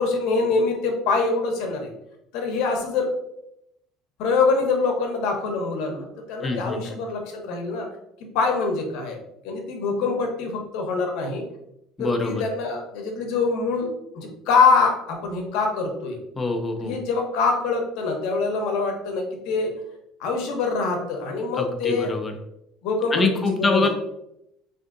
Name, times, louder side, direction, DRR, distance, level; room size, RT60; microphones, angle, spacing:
voice 1, 0.0-1.9 2.3-3.1 4.2-7.9 8.2-9.2 9.4-11.4 12.0-13.9 14.1-16.2 16.8-19.7 20.2-22.1 22.8-23.9, left 4 dB, 60° left, 3 dB, 0.7 m, -24 dB
voice 2, 6.4-7.0 12.0-12.4 16.4-16.9 21.5-22.3 23.1-23.9, left 3 dB, 15° left, 4 dB, 0.3 m, -24 dB
3.5 x 2.5 x 2.5 m, 0.81 s
cardioid pair, 180°, 0 cm